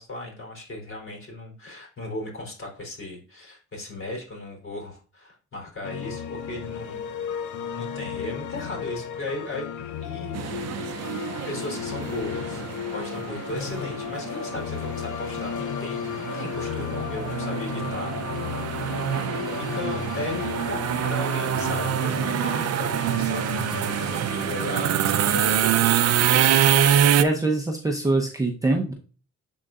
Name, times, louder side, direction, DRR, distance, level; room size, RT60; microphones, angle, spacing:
voice 1, 0.0-7.0 7.7-10.8 11.5-12.6 12.9-19.0 19.5-20.8 21.0-26.4, left 2 dB, 45° left, 0 dB, 3.4 m, -36 dB
sound 1, 5.8-25.3, left 8 dB, 75° left, 0.8 m, -34 dB
sound 2, 10.3-27.2, right 10 dB, 55° right, 0.6 m, -25 dB
voice 2, 27.2-28.9, right 2 dB, 10° right, 1 dB, 0.8 m, -24 dB
10.5 x 3.8 x 2.4 m, 0.38 s
cardioid pair, 90°, 30 cm